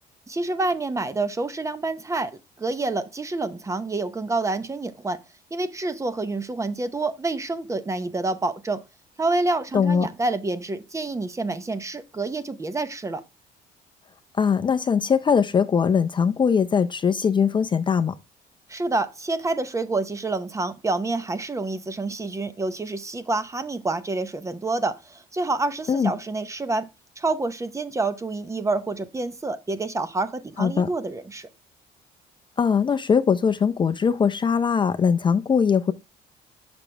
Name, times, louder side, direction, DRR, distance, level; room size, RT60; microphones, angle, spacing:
voice 1, 0.3-2.3 2.6-5.2 5.5-8.8 9.2-13.2 18.7-26.9 27.2-31.5, right 2 dB, 20° right, 0.8 m, -28 dB
voice 2, 9.7-10.1 14.4-18.1 25.9-26.1 30.6-30.9 32.6-35.9, left 6 dB, 30° left, 0.5 m, -21 dB
6.1 x 5.9 x 3.2 m
cardioid pair, 110°, 17 cm